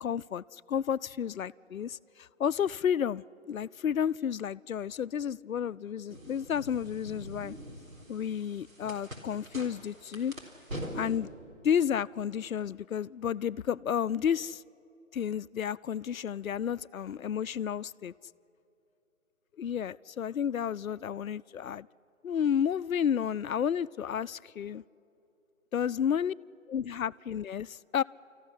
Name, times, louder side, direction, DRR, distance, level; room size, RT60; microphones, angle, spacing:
voice 1, 0.0-7.5 8.1-10.3 10.9-11.3 11.6-14.6 15.1-18.1 19.6-21.9 22.2-24.8 25.7-26.3 26.7-28.0, left 8 dB, 90° left, 19 dB, 0.5 m, -31 dB
sound 1, 6.1-11.2, equal, 85° right, 3.8 m, -43 dB
26.5 x 14.5 x 9.9 m, 2.8 s
figure-of-eight pair, 155°, 40 cm